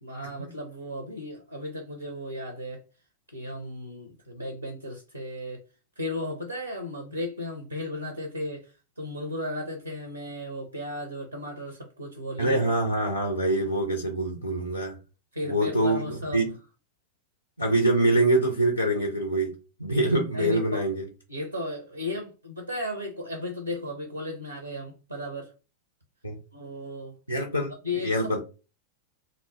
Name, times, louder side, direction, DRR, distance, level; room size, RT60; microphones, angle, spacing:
voice 1, 0.0-2.8 3.3-5.6 6.0-12.7 15.3-16.5 20.3-20.8 21.3-25.5 26.5-27.1 27.8-28.4, left 1 dB, 85° right, 0.5 m, -35 dB
voice 2, 12.4-15.0 15.4-16.5 17.6-19.5 19.8-21.0 26.2-26.4 27.3-28.4, right 1 dB, 85° left, 0.4 m, -25 dB
2.4 x 2.1 x 2.8 m
figure-of-eight pair, 90°, 0 cm